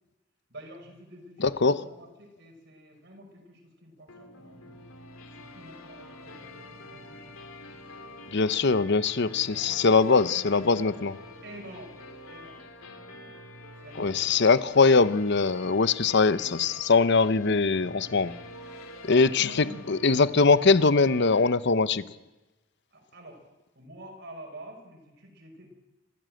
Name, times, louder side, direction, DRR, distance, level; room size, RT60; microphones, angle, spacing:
voice 1, 0.5-4.8 5.3-7.4 7.7-8.4 9.3-9.8 10.1-10.9 11.4-12.0 12.3-12.6 13.1-13.5 13.8-14.4 16.3-16.5 19.1-19.8 22.9-23.5 23.8-25.7, right 1 dB, 55° right, 2 dB, 5.8 m, -48 dB
voice 2, 1.4-1.8 8.3-11.1 14.0-18.3 19.1-22.0, left 4 dB, 55° left, 15 dB, 0.8 m, -22 dB
sound 1, 4.1-21.5, left 2 dB, 75° left, 3.0 m, -46 dB
26.0 x 14.5 x 7.8 m, 1.1 s
head